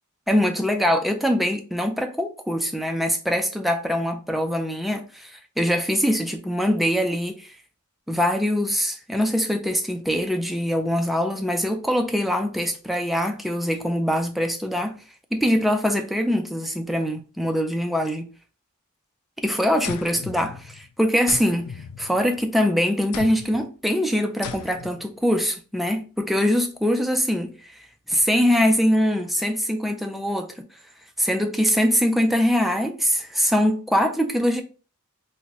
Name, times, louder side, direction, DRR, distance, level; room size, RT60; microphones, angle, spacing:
voice 1, 0.3-7.5 8.1-15.0 15.3-18.3 19.4-27.5 28.1-30.7 31.2-34.6, equal, ahead, 0.3 m, -23 dB
sound 1, 19.8-20.9 21.3-22.6 23.1-23.7 24.4-25.1, left 7 dB, 90° left, 0.4 m, -37 dB
3.9 x 2.1 x 2.9 m
head